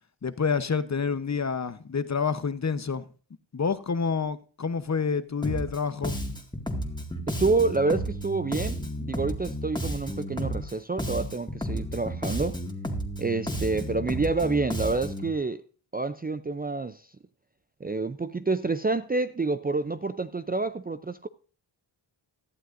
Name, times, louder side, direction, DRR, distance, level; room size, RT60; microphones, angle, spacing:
voice 1, 0.2-3.0 3.5-6.1, left 5 dB, 35° left, 0.9 m, -28 dB
Bass guitar, 5.4-5.8 6.0-10.7 11.0-15.3, equal, 10° left, 2.0 m, -32 dB
voice 2, 7.3-12.6 13.2-15.6 15.9-17.1 17.8-21.3, right 3 dB, 20° right, 0.5 m, -28 dB
17.5 x 11.5 x 2.6 m
cardioid pair, 60°, 49 cm